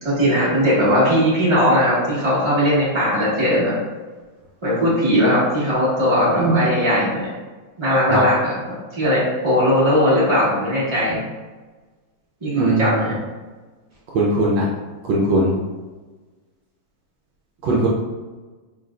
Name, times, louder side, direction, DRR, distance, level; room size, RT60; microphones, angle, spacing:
voice 1, 0.0-3.7 4.6-7.3 7.8-8.5 8.9-11.2 12.4-13.1, equal, 15° right, -9 dB, 1.2 m, -18 dB
voice 2, 12.5-13.0 14.1-14.7 15.0-15.6 17.6-17.9, right 2 dB, 70° right, -3 dB, 1.3 m, -19 dB
4.8 x 3.1 x 2.4 m, 1.3 s
omnidirectional pair, 2.2 m